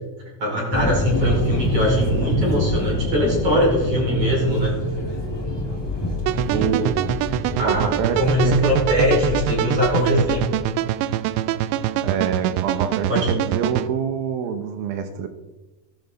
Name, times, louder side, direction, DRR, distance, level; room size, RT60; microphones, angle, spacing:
voice 1, 0.4-4.7 6.5-6.7 7.3-10.4 13.1-13.3, equal, 35° right, -4 dB, 5.7 m, -21 dB
sound 1, 0.7-10.5, left 1 dB, 30° left, 0.4 m, -26 dB
sound 2, 6.3-13.9, right 13 dB, 90° right, 2.8 m, -24 dB
voice 2, 6.5-7.1 7.6-8.6 12.0-15.3, right 7 dB, 75° right, 8 dB, 2.4 m, -26 dB
17.0 x 12.5 x 4.0 m, 1.1 s
omnidirectional pair, 4.9 m